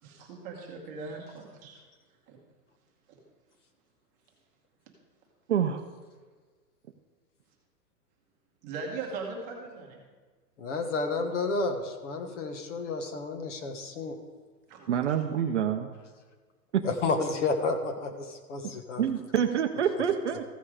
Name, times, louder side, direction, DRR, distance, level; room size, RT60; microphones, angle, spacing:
voice 1, 0.0-1.8 2.3-2.4 3.1-3.2 8.6-10.1 14.7-15.2, right 4 dB, 15° right, -1 dB, 1.1 m, -40 dB
voice 2, 5.5-5.8 14.9-15.9 16.7-16.8 19.0-20.4, right 8 dB, 45° right, 7 dB, 0.6 m, -26 dB
voice 3, 10.6-14.2 16.8-19.0, left 3 dB, 45° left, 6 dB, 1.3 m, -31 dB
14.5 x 5.5 x 4.9 m, 1.5 s
hypercardioid pair, 165°, 49 cm